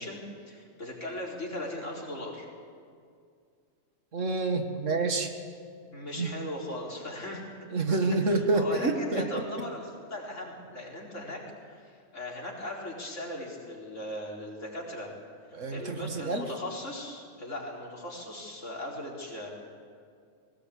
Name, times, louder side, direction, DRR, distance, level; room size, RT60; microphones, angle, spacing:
voice 1, 0.0-2.5 5.9-7.5 7.9-15.1 15.7-19.5, left 1 dB, 70° left, -3 dB, 4.8 m, -38 dB
voice 2, 4.1-5.3 6.2-6.3 7.7-9.4 15.5-16.5, right 3 dB, 75° right, 5 dB, 2.2 m, -28 dB
21.0 x 19.0 x 8.5 m, 2.2 s
omnidirectional pair, 1.3 m